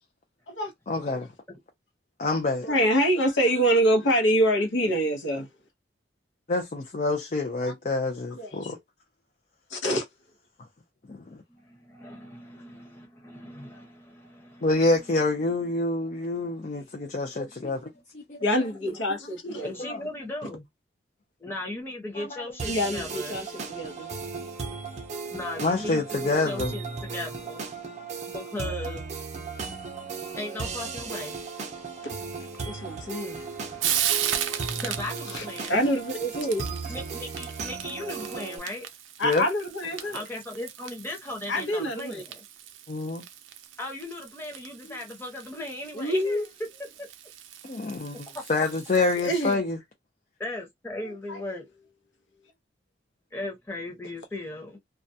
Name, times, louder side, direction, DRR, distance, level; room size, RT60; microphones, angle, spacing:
voice 1, 0.9-1.3 2.2-2.7 6.5-8.8 11.1-11.4 14.6-18.4 19.4-19.5 19.8-20.0 22.2-22.4 25.6-26.7 39.2-39.4 42.9-43.3 44.9-45.0 47.6-49.8, left 2 dB, 40° left, 0.4 m, -27 dB
voice 2, 2.6-5.5 8.3-8.7 9.7-10.0 18.4-19.7 22.7-24.1 32.0-32.1 32.6-33.5 35.3-36.7 39.2-40.2 41.5-42.2 45.9-46.4 49.2-49.6 51.3-51.4, equal, 80° left, 0.8 m, -26 dB
voice 3, 11.5-15.1 18.0-18.1 19.6-20.6 21.4-23.4 25.3-27.7 28.3-29.0 30.3-31.4 34.5-35.8 36.9-38.9 40.0-42.4 43.8-46.5 47.0-47.1 48.3-48.4 50.4-51.7 53.3-54.8, left 2 dB, 10° left, 0.8 m, -38 dB
sound 1, 22.6-38.6, right 4 dB, 40° right, 0.5 m, -36 dB
Frying (food), 32.6-49.5, right 10 dB, 85° right, 0.4 m, -36 dB
2.3 x 2.1 x 2.6 m
head